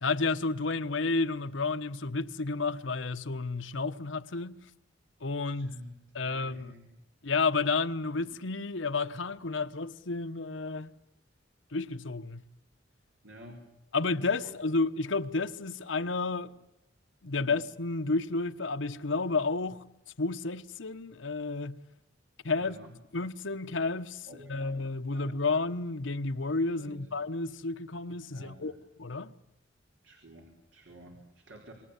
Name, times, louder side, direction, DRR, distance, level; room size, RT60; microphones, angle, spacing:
voice 1, 0.0-4.6 5.2-5.8 6.1-6.7 7.2-10.9 11.7-12.5 13.9-16.5 17.2-19.9 20.2-21.8 22.4-22.8 23.1-28.7 29.0-29.3, left 3 dB, 90° left, 1.1 m, -31 dB
voice 2, 5.4-7.0 8.3-8.4 13.2-13.7 14.4-14.5 17.3-17.6 22.6-23.0 24.3-24.8 25.1-25.5 26.8-27.1 28.3-28.8 30.0-31.7, equal, 80° right, 4.3 m, -51 dB
27.0 x 23.0 x 8.3 m
head